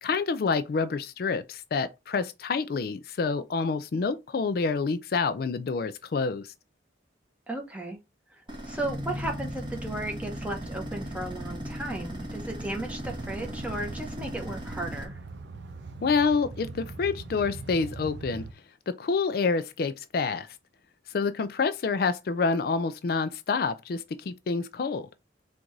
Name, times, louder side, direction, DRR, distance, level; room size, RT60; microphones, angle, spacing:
voice 1, 0.0-6.5 16.0-18.4 18.9-20.5 21.1-25.1, left 4 dB, 55° left, 0.4 m, -28 dB
voice 2, 7.5-8.0 8.3-15.2, right 1 dB, 10° right, 0.9 m, -35 dB
sound 1, 8.5-15.0, equal, 25° right, 1.1 m, -37 dB
sound 2, 13.0-18.5, right 3 dB, 75° right, 0.6 m, -41 dB
4.5 x 2.5 x 3.8 m
head